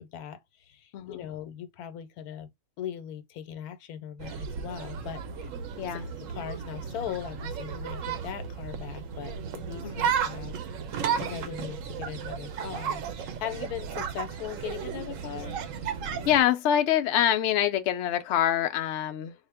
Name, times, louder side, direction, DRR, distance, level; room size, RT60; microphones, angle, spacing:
voice 1, 0.0-2.5 2.8-5.2 5.9-10.6 11.2-15.6, left 10 dB, 85° left, 1.2 m, -39 dB
voice 2, 0.9-1.3 5.8-6.1 9.8-10.1 16.3-19.3, left 10 dB, 65° left, 0.7 m, -25 dB
sound 1, 4.2-16.4, right 7 dB, 70° right, 0.9 m, -34 dB
4.2 x 2.0 x 3.3 m
omnidirectional pair, 1.6 m